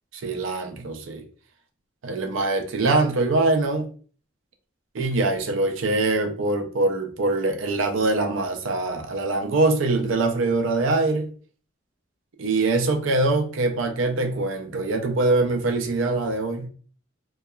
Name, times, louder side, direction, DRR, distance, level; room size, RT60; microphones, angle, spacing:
voice 1, 0.2-1.2 2.0-3.9 4.9-11.3 12.4-16.7, right 2 dB, 85° right, 0.5 m, -23 dB
2.8 x 2.3 x 2.3 m
head